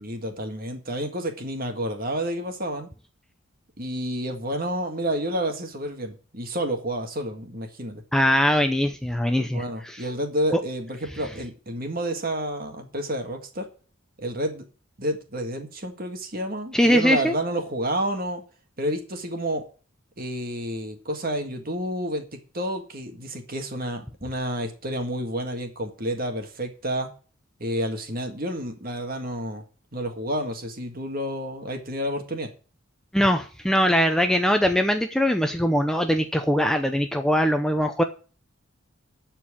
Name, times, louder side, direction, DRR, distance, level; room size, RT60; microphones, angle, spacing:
voice 1, 0.0-2.9 3.8-8.0 9.4-13.7 14.2-14.6 15.0-18.4 18.8-19.6 20.2-27.1 27.6-29.6 29.9-32.5, right 1 dB, 45° right, 5 dB, 1.8 m, -30 dB
voice 2, 8.1-10.0 10.5-10.6 16.7-17.3 33.1-38.0, equal, 5° left, 6 dB, 0.6 m, -21 dB
12.5 x 4.5 x 8.5 m, 0.39 s
head